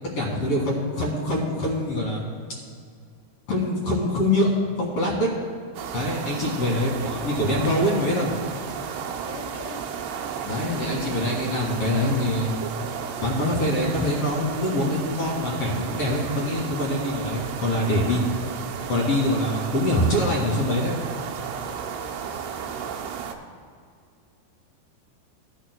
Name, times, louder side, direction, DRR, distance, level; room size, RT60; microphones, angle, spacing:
voice 1, 0.1-2.3 3.5-4.5 4.8-5.3 5.9-8.3 10.4-12.5 13.2-18.2 18.9-20.9, left 1 dB, 45° left, -3 dB, 2.4 m, -24 dB
sound 1, 5.7-23.3, right 7 dB, 80° right, 1.9 m, -33 dB
voice 2, 9.2-9.8 22.3-22.7, left 5 dB, 65° left, 0 dB, 2.1 m, -42 dB
17.0 x 11.5 x 2.2 m, 2.2 s
omnidirectional pair, 4.5 m